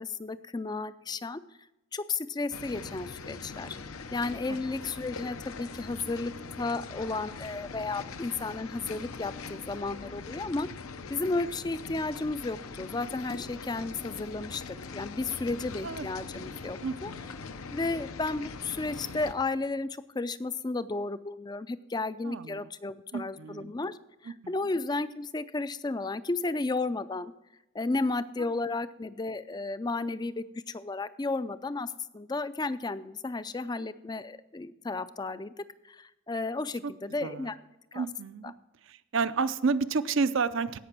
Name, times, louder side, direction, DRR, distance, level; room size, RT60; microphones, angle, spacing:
voice 1, 0.0-1.4 1.9-6.3 6.6-10.7 11.1-17.1 17.7-27.3 27.7-35.5 35.8-37.6 37.9-38.1, left 3 dB, 20° left, 15 dB, 0.4 m, -33 dB
sound 1, 2.5-19.3, left 4 dB, 80° left, 0.8 m, -42 dB
voice 2, 16.4-17.3 22.2-22.6 23.1-23.8 24.3-24.5 36.8-36.9 37.2-37.5 37.9-38.5 38.9-40.8, right 4 dB, 60° right, 13 dB, 0.5 m, -31 dB
16.5 x 5.8 x 6.0 m, 0.96 s
head